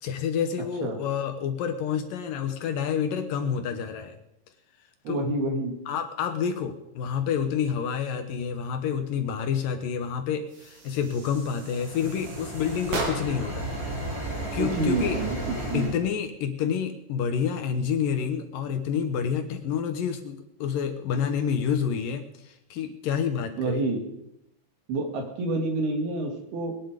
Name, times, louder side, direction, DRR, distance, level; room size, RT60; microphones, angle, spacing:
voice 1, 0.0-4.2 5.1-5.3 5.9-13.7 14.5-15.2 15.7-23.8, left 7 dB, 70° left, 7 dB, 2.5 m, -28 dB
voice 2, 5.0-5.7 14.6-15.4 15.7-15.9 23.6-24.0 24.9-26.8, right 2 dB, 75° right, 3 dB, 4.3 m, -28 dB
sound 1, 10.5-13.6, right 2 dB, 50° right, 3.3 m, -36 dB
sound 2, 11.3-16.0, right 1 dB, 25° right, 6.2 m, -34 dB
21.0 x 10.0 x 5.1 m, 0.81 s
omnidirectional pair, 4.5 m